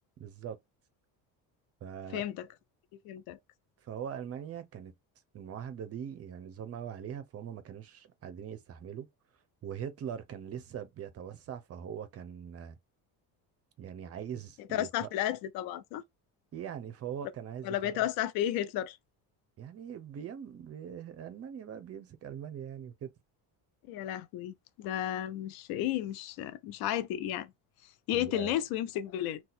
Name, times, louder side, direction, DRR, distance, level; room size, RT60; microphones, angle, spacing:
voice 1, 0.2-0.6 1.8-2.2 3.8-4.9 5.3-9.1 9.6-12.8 13.8-15.1 16.5-18.1 19.6-23.1 28.1-28.5, right 8 dB, 40° right, 0.6 m, -41 dB
voice 2, 2.1-2.5 3.1-3.4 14.7-16.0 17.6-19.0 23.9-27.5 28.1-29.4, left 12 dB, 75° left, 0.5 m, -33 dB
2.7 x 2.3 x 4.0 m
cardioid pair, 120°, 37 cm